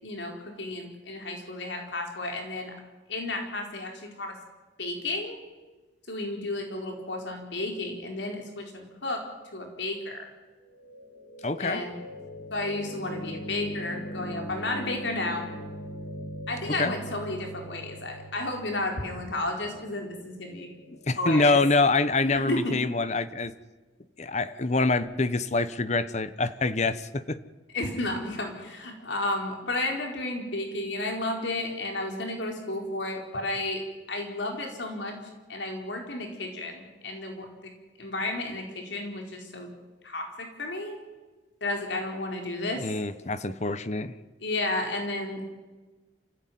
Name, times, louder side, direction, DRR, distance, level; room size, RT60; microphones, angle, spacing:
voice 1, 0.0-2.7 3.1-4.3 4.8-5.4 6.1-9.2 9.5-10.3 11.6-11.9 12.5-15.5 16.5-20.7 21.2-21.6 22.2-22.8 27.7-35.2 35.5-37.5 38.0-39.7 40.0-41.0 41.6-42.9 44.4-45.5, left 2 dB, 85° left, 2 dB, 4.5 m, -32 dB
sound 1, 10.7-22.8, equal, 60° left, 2.2 m, -41 dB
voice 2, 11.4-11.8 16.7-16.9 20.9-23.5 24.2-27.4 42.8-44.1, left 3 dB, 40° left, 13 dB, 1.1 m, -26 dB
27.5 x 15.5 x 9.4 m, 1.2 s
head